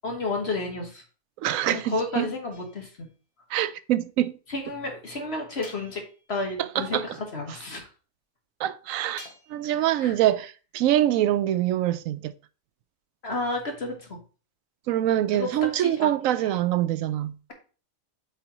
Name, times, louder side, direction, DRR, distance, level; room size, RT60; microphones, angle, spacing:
voice 1, 0.0-1.0 1.7-3.1 4.5-6.0 6.3-7.9 9.6-10.1 13.2-14.2 15.3-15.5 15.8-16.1, left 2 dB, 55° left, 1.6 m, -31 dB
voice 2, 1.4-2.3 3.5-4.4 6.6-7.1 8.6-9.2 9.5-12.3 14.9-17.4, right 12 dB, 90° right, 1.0 m, -25 dB
sound 1, 2.5-3.2 5.6-6.4 9.2-9.8, left 1 dB, 30° left, 1.2 m, -49 dB
8.3 x 5.0 x 2.9 m
omnidirectional pair, 1.4 m